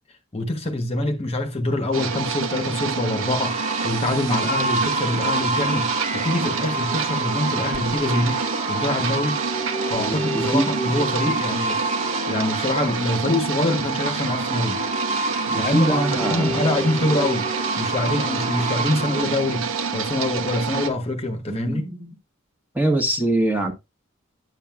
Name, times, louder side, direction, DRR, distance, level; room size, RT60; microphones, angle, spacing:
voice 1, 0.3-9.4 9.9-14.8 15.5-17.5 17.8-21.9, left 1 dB, 30° left, 1.1 m, -25 dB
sound 1, 1.9-20.9, right 5 dB, 75° right, 0.8 m, -27 dB
sound 2, 2.1-19.2, right 1 dB, 35° right, 1.2 m, -29 dB
voice 2, 9.9-10.7 15.5-16.6 21.5-22.1 22.7-23.7, right 1 dB, 10° right, 1.2 m, -23 dB
9.8 x 7.3 x 2.3 m
head